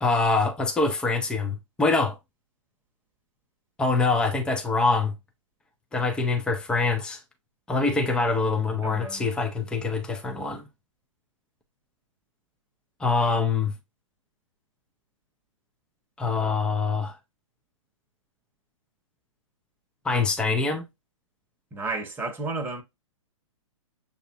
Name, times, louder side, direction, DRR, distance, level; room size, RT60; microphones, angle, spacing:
voice 1, 0.0-2.2 3.8-5.2 5.9-7.2 7.7-10.6 13.0-13.7 16.2-17.2 20.0-20.9, left 3 dB, 5° left, 0.6 m, -24 dB
voice 2, 8.8-9.3 21.7-22.8, right 3 dB, 10° right, 1.2 m, -32 dB
6.9 x 2.7 x 2.4 m
hypercardioid pair, 125°, 17 cm